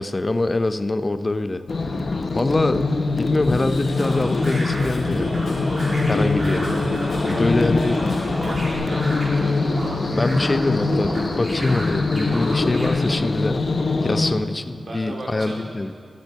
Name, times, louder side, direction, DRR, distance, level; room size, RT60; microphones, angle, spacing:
voice 1, 0.0-1.6 2.3-2.9 3.2-5.3 6.1-6.7 7.3-8.0 9.5-9.7 10.1-13.7 14.0-15.9, left 2 dB, 30° left, 11 dB, 0.5 m, -24 dB
sound 1, 1.7-14.3, left 3 dB, 55° left, 0.8 m, -23 dB
Drum kit / Drum, 3.4-8.7, left 1 dB, 80° left, 4.0 m, -36 dB
sound 2, 4.0-12.9, right 1 dB, 30° right, 2.6 m, -34 dB
voice 2, 5.9-6.8 7.3-9.8 13.7-14.2 14.9-15.6, right 1 dB, 55° right, -2 dB, 2.7 m, -38 dB
12.5 x 12.0 x 4.7 m, 2.1 s
wide cardioid pair, 95°, 0 cm